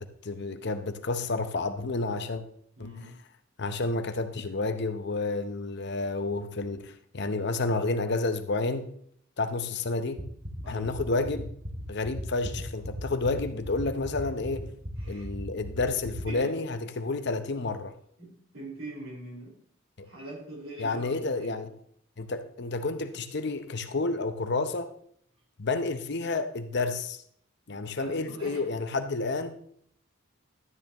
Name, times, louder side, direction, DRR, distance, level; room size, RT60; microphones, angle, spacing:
voice 1, 0.0-2.4 2.8-3.1 3.6-8.9 9.4-10.2 10.7-11.5 11.9-14.7 15.1-17.9 20.0-20.1 20.8-21.7 22.2-24.9 25.6-27.2 27.7-29.6, left 3 dB, 55° left, 0.8 m, -30 dB
voice 2, 2.8-3.2 10.6-11.1 15.0-15.3 16.0-16.5 18.2-19.6 20.0-21.7 27.7-28.6, right 2 dB, 75° right, 4.8 m, -43 dB
sound 1, 10.2-16.2, equal, 50° right, 2.7 m, -36 dB
12.5 x 9.5 x 3.0 m
head